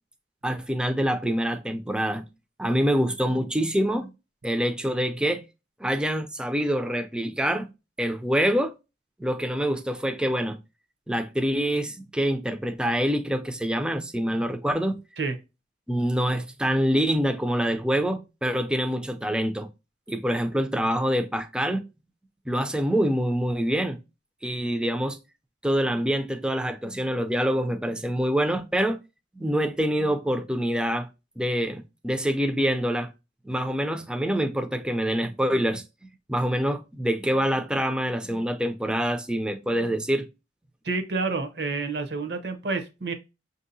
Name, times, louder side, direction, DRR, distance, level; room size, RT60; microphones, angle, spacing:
voice 1, 0.4-2.3 2.6-4.1 4.4-5.4 5.8-7.7 8.0-8.7 9.2-10.6 11.1-15.0 15.9-19.7 20.1-21.8 22.5-24.0 24.4-25.2 25.6-29.0 29.3-31.1 31.4-33.1 33.4-35.8 36.3-40.3, equal, 5° right, 0.4 m, -25 dB
voice 2, 40.8-43.1, right 4 dB, 70° right, 0.8 m, -29 dB
5.9 x 2.7 x 2.6 m
head